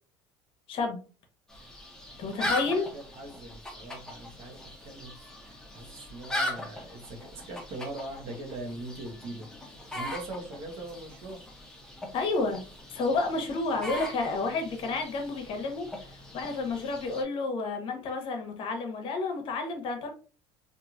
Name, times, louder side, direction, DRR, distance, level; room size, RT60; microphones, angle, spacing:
voice 1, 0.7-1.0 2.2-2.9 12.1-12.6 12.9-20.1, left 3 dB, 50° left, 5 dB, 0.8 m, -30 dB
sound 1, 1.5-17.2, left 1 dB, 5° left, 0.7 m, -40 dB
voice 2, 2.5-11.4, right 2 dB, 60° right, 3 dB, 1.0 m, -42 dB
3.0 x 2.5 x 2.4 m, 0.36 s
supercardioid pair, 115°, 11 cm